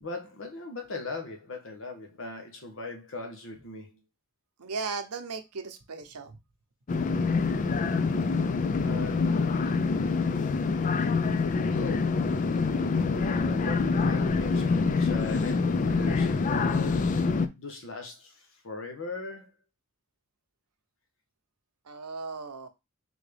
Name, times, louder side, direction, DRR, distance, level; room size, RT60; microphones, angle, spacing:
voice 1, 0.0-4.0 8.8-10.0 11.7-12.2 13.0-19.5, left 3 dB, 60° left, 1.1 m, -40 dB
voice 2, 4.6-6.3 21.9-22.7, right 4 dB, 90° right, 0.8 m, -36 dB
sound 1, 6.9-17.5, left 4 dB, 35° left, 0.3 m, -26 dB
3.7 x 3.5 x 3.3 m
head